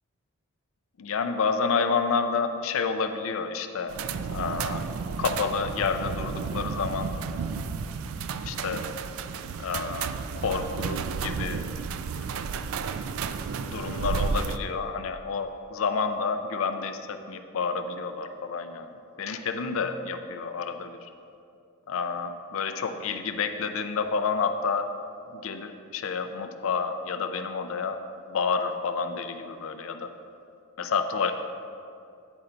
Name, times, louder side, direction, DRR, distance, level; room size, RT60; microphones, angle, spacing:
voice 1, 1.0-3.9 4.3-4.8 5.2-7.1 8.4-8.8 9.6-10.1 10.4-11.6 12.4-12.5 13.6-18.9 19.2-21.1 21.9-24.9 25.3-28.0 28.3-30.1 30.8-31.3, left 5 dB, 65° left, 8 dB, 0.4 m, -29 dB
sound 1, 3.9-14.6, right 5 dB, 70° right, 0.3 m, -32 dB
9.0 x 3.8 x 4.3 m, 2.4 s
head